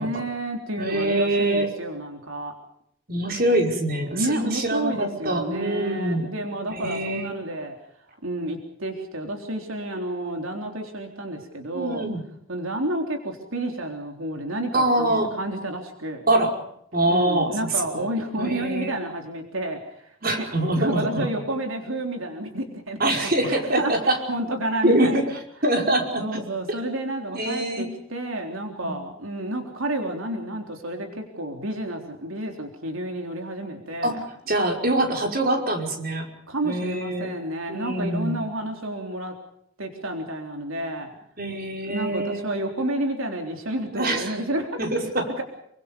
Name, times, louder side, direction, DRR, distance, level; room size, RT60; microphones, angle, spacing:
voice 1, 0.0-2.5 4.1-7.7 8.2-12.1 12.5-16.2 17.1-20.4 20.8-25.2 26.2-34.2 36.5-39.3 39.8-41.1 41.9-44.8, right 1 dB, 80° right, 3 dB, 3.8 m, -30 dB
voice 2, 0.8-1.7 3.1-6.3 6.7-7.3 11.7-12.2 14.7-15.3 16.3-16.6 16.9-18.1 18.4-18.9 20.2-21.3 23.0-24.2 24.8-25.3 25.6-26.4 27.3-27.9 28.8-29.0 34.0-36.3 36.6-37.3 37.7-38.4 41.4-42.5 43.9-44.4 44.8-45.3, right 1 dB, 45° right, 2 dB, 5.3 m, -24 dB
28.0 x 24.5 x 5.3 m, 0.73 s
head